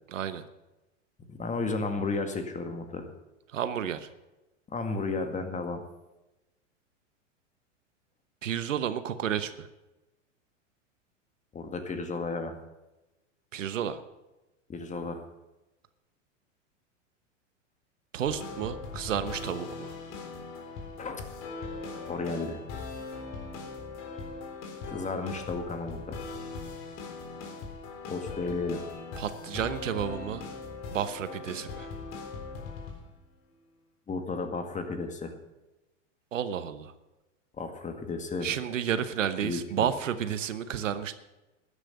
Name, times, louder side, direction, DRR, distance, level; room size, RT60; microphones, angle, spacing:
voice 1, 0.1-0.4 3.5-4.1 8.4-9.7 13.5-14.0 18.1-19.9 29.2-30.4 30.9-31.9 36.3-36.9 38.4-41.1, right 9 dB, 85° right, 12 dB, 1.1 m, -31 dB
voice 2, 1.3-3.1 4.7-5.8 11.5-12.5 14.7-15.2 21.0-21.2 22.1-22.6 24.9-26.2 28.1-28.8 34.1-35.3 37.6-38.5 39.4-39.9, left 3 dB, 20° left, 6 dB, 1.9 m, -33 dB
sound 1, 18.2-33.2, left 4 dB, 45° left, 3.4 m, -40 dB
12.5 x 10.0 x 6.6 m, 1.0 s
hypercardioid pair, 105°, 37 cm